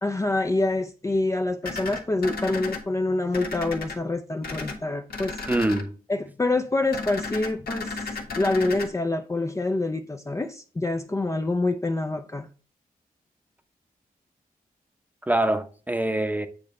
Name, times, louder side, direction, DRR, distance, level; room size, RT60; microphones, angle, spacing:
voice 1, 0.0-5.4 6.1-8.1 8.4-12.5, left 2 dB, 20° left, 0.5 m, -26 dB
sound 1, 1.6-2.8 3.3-4.0 4.4-4.8 5.1-5.8 6.9-8.9, left 3 dB, 85° left, 1.7 m, -33 dB
voice 2, 5.5-5.9 15.3-16.5, right 1 dB, 10° right, 0.8 m, -24 dB
8.8 x 3.2 x 5.3 m
cardioid pair, 80°, 15 cm